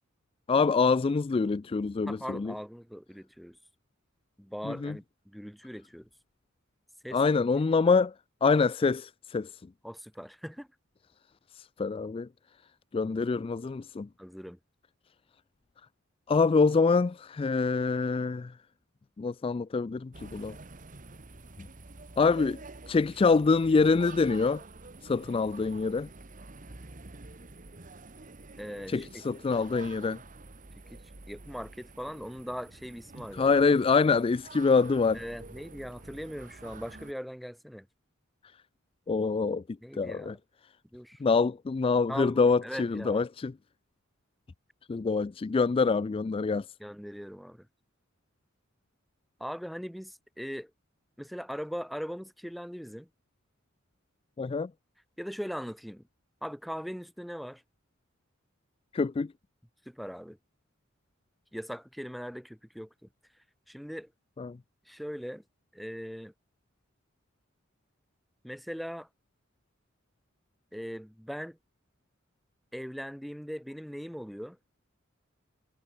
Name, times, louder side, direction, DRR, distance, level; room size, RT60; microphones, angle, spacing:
voice 1, 0.5-2.5 4.6-5.0 7.1-8.1 8.4-9.5 11.5-12.3 12.9-14.1 16.3-18.5 19.2-20.6 22.2-22.6 22.9-24.6 25.0-26.1 28.9-30.2 33.3-35.2 39.1-39.6 40.0-40.4 41.2-43.5 44.9-46.7 54.4-54.7 58.9-59.3 64.4-64.6, left 4 dB, 25° left, 0.3 m, -25 dB
voice 2, 2.1-3.6 4.4-6.1 7.0-7.5 9.8-10.7 14.2-14.6 28.6-29.1 30.9-31.0 31.3-33.6 35.1-37.9 39.8-40.4 40.9-41.2 42.1-43.2 46.8-47.7 49.4-50.7 51.2-53.1 55.2-56.0 56.4-57.6 59.9-60.4 61.5-62.9 63.7-64.1 64.9-65.4 65.7-66.3 68.4-69.1 70.7-71.6 72.7-74.6, equal, ahead, 2.5 m, -40 dB
sound 1, 20.1-37.1, right 3 dB, 40° right, 1.6 m, -48 dB
head